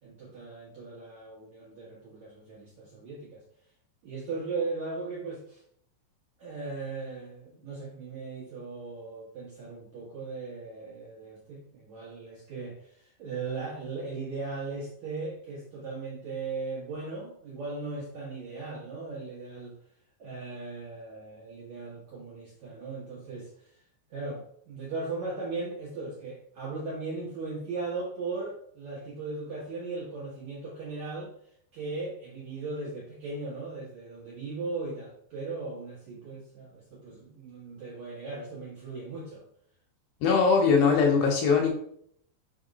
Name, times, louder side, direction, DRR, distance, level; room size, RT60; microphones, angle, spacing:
voice 1, 0.0-3.4 4.0-5.6 6.4-19.7 20.2-23.5 24.1-31.3 31.7-39.5, right 3 dB, 65° right, -5 dB, 1.8 m, -38 dB
voice 2, 40.2-41.7, left 5 dB, 70° left, 1 dB, 2.9 m, -21 dB
6.5 x 3.5 x 5.2 m, 0.66 s
omnidirectional pair, 5.3 m